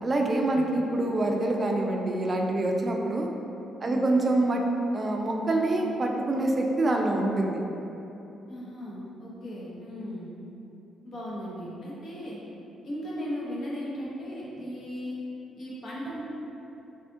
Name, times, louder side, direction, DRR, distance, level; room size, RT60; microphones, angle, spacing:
voice 1, 0.0-3.3 3.8-4.6 4.9-7.6, right 2 dB, 35° right, 1 dB, 0.4 m, -26 dB
voice 2, 8.5-10.3 11.0-12.4 12.8-15.2 15.6-16.2, equal, 50° left, -7 dB, 0.9 m, -37 dB
4.1 x 2.3 x 2.6 m, 2.9 s
cardioid pair, 90°, 0 cm